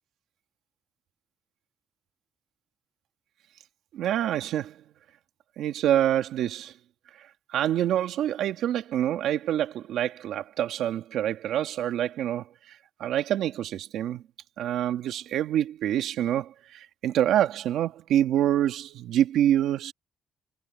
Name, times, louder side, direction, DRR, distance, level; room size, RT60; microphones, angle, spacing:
voice 1, 3.9-4.7 5.6-6.7 7.5-14.2 14.6-19.9, right 11 dB, 80° right, 1.8 m, -26 dB
cardioid pair, 90°, 0 cm